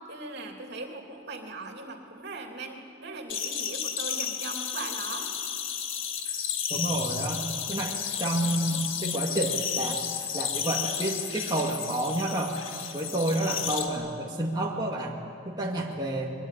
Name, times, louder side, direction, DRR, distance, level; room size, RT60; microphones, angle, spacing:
voice 1, 0.1-5.3, right 3 dB, 60° right, 2 dB, 3.1 m, -39 dB
sound 1, 3.3-13.9, left 8 dB, 85° left, 2.1 m, -32 dB
voice 2, 6.7-7.4 7.7-7.9 8.2-10.0 10.3-12.5 12.9-15.2 15.5-16.3, right 1 dB, 20° right, -2 dB, 2.1 m, -29 dB
23.5 x 22.5 x 9.4 m, 2.5 s
head